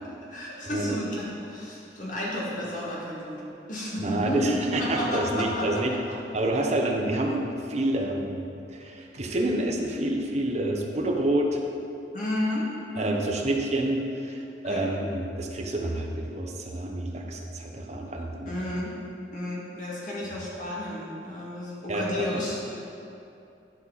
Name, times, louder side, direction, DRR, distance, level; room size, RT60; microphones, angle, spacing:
voice 1, 0.3-3.4 3.7-6.2 12.1-13.1 14.6-14.9 18.5-18.9 19.3-22.9, left 1 dB, 50° left, -5 dB, 1.9 m, -32 dB
voice 2, 4.0-5.9 6.3-11.6 13.0-18.6 21.9-22.1 22.3-22.4, right 1 dB, 40° right, 1 dB, 0.8 m, -28 dB
10.5 x 5.6 x 4.1 m, 2.7 s
head